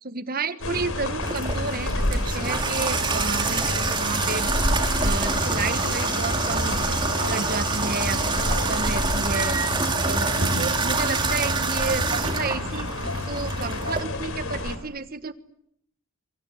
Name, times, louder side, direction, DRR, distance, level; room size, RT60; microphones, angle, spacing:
voice 1, 0.0-9.6 10.0-12.9 13.3-15.3, right 3 dB, 45° right, 12 dB, 1.4 m, -31 dB
sound 1, 0.6-14.8, left 1 dB, 85° left, 3.8 m, -30 dB
Water tap faucet / Bathtub (filling or washing), 1.2-14.0, right 3 dB, 25° right, 2.2 m, -26 dB
sound 2, 9.3-11.1 12.0-13.1 13.4-14.2, right 2 dB, 90° right, 6.1 m, -34 dB
25.0 x 24.5 x 8.7 m, 0.72 s
head